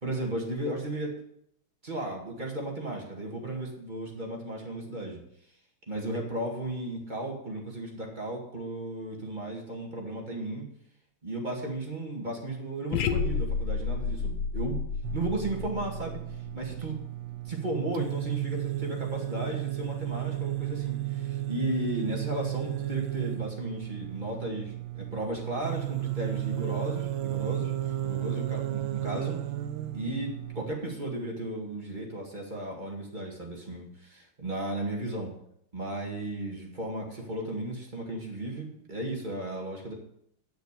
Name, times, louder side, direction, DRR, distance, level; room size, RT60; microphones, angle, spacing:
voice 1, 0.0-1.2 1.8-5.2 5.9-10.7 11.2-14.8 15.1-16.2 16.5-17.0 17.5-29.4 29.9-35.3 35.7-39.9, right 1 dB, 20° right, -1 dB, 2.0 m, -35 dB
sound 1, 12.9-17.0, left 5 dB, 75° left, 1.5 m, -31 dB
sound 2, 15.0-30.7, right 14 dB, 70° right, 1.2 m, -34 dB
10.0 x 6.4 x 6.8 m, 0.73 s
omnidirectional pair, 2.4 m